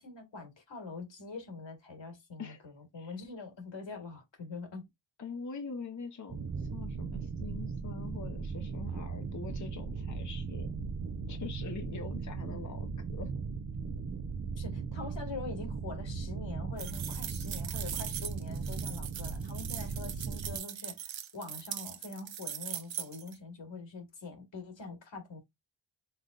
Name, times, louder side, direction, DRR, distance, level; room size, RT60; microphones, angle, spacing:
voice 1, 0.0-4.8 14.6-25.4, left 3 dB, 75° left, 1.9 m, -44 dB
voice 2, 5.2-10.7 11.3-13.3, left 5 dB, 40° left, 0.8 m, -44 dB
sound 1, 6.3-20.6, right 5 dB, 35° right, 0.6 m, -38 dB
sound 2, 16.8-23.3, right 10 dB, 80° right, 0.7 m, -40 dB
5.5 x 3.6 x 2.4 m
wide cardioid pair, 70°, 45 cm